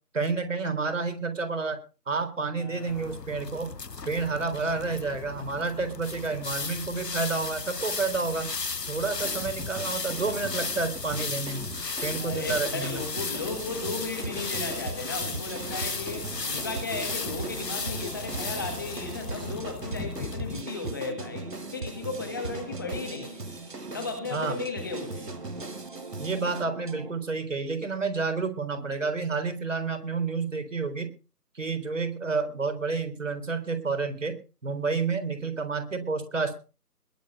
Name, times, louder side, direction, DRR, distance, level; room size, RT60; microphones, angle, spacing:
voice 1, 0.1-1.8 2.1-3.7 4.1-8.5 8.9-11.7 12.0-13.0 24.3-24.6 26.2-31.1 31.5-36.7, right 4 dB, 50° right, 3.9 m, -30 dB
voice 2, 2.6-3.2 12.2-23.5 23.9-25.3, left 3 dB, 15° left, 1.5 m, -35 dB
sound 1, 2.8-20.6, left 4 dB, 85° left, 1.2 m, -35 dB
sound 2, 9.2-26.7, right 3 dB, 80° right, 2.1 m, -40 dB
sound 3, 13.4-27.1, right 3 dB, 30° right, 1.4 m, -41 dB
21.5 x 7.7 x 5.3 m
figure-of-eight pair, 160°, 48 cm